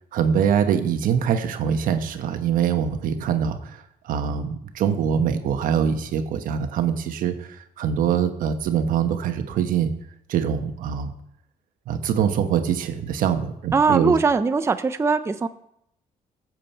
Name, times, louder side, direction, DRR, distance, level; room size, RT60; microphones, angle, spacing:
voice 1, 0.1-9.9 10.3-11.1 11.9-14.1, right 8 dB, 80° right, 7 dB, 1.2 m, -24 dB
voice 2, 13.7-15.5, right 4 dB, 20° right, 10 dB, 0.5 m, -21 dB
15.5 x 7.7 x 4.5 m, 0.76 s
cardioid pair, 110°, 14 cm